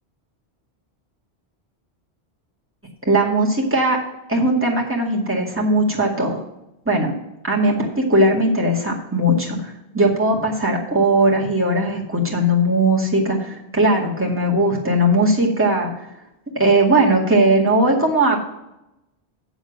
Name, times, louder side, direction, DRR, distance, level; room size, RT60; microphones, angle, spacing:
voice 1, 3.1-4.0 4.3-6.4 6.9-7.1 7.4-15.9 16.5-18.4, right 1 dB, 10° right, -3 dB, 2.1 m, -18 dB
8.0 x 7.0 x 6.4 m, 0.88 s
omnidirectional pair, 1.1 m